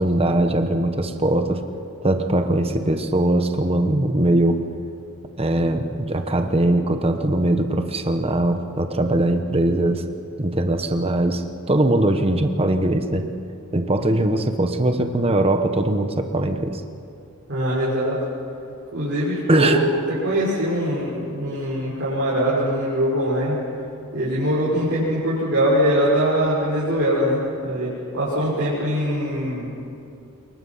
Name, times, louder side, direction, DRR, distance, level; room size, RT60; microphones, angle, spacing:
voice 1, 0.0-1.6 2.0-4.6 5.4-10.0 10.4-13.3 13.7-16.8 19.5-19.8, right 1 dB, 25° right, 6 dB, 1.2 m, -21 dB
voice 2, 17.5-18.2 18.9-23.5 24.1-27.9 28.1-29.7, equal, 55° right, -8 dB, 6.0 m, -22 dB
27.5 x 23.0 x 5.8 m, 2.7 s
head